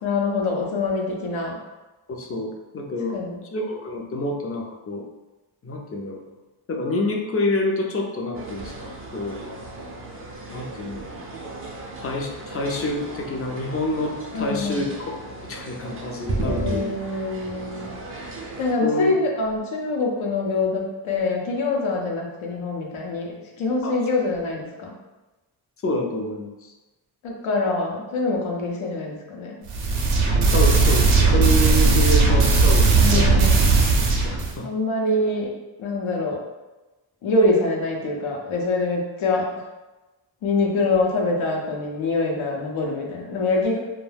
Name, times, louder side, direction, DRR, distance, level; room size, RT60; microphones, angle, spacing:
voice 1, 0.0-1.6 3.1-3.4 14.3-14.9 16.4-17.9 18.6-23.3 23.5-25.0 27.2-29.6 32.9-33.7 34.6-35.5 35.8-36.4 37.2-39.5 40.4-43.8, left 2 dB, 80° left, -1 dB, 0.7 m, -25 dB
voice 2, 2.1-3.2 3.5-5.0 5.6-6.2 6.7-9.4 10.5-11.1 12.0-15.2 15.5-16.9 18.8-19.1 23.8-24.0 25.8-26.7 30.5-33.4 34.2-34.7, left 1 dB, 30° left, 1 dB, 0.4 m, -27 dB
sound 1, 8.3-18.7, right 2 dB, 30° right, 0.4 m, -35 dB
sound 2, 29.7-34.5, right 3 dB, 90° right, 0.6 m, -17 dB
2.2 x 2.2 x 3.2 m, 1.1 s
cardioid pair, 90°, 47 cm